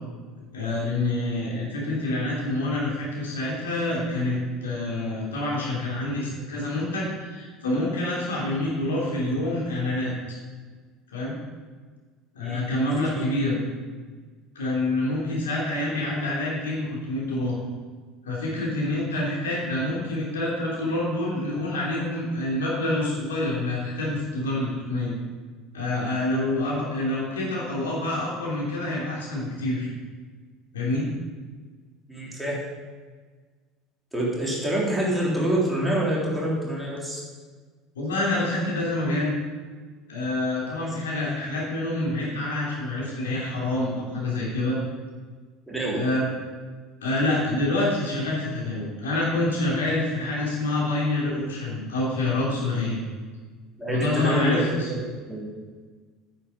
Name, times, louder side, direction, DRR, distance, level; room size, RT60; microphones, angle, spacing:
voice 1, 0.5-10.1 11.1-11.3 12.3-13.6 14.5-17.6 18.2-25.1 25.7-29.9 30.7-31.0 37.9-39.3 40.1-44.8 45.9-46.3 47.0-53.0 53.8-54.9, left 2 dB, 70° left, -5 dB, 3.2 m, -27 dB
voice 2, 32.1-32.6 34.1-37.2 40.9-41.0 45.7-46.0 53.8-54.6 54.9-55.0 55.3-55.5, right 1 dB, 5° right, -6 dB, 3.6 m, -26 dB
9.6 x 8.4 x 5.3 m, 1.4 s
figure-of-eight pair, 65°, 0 cm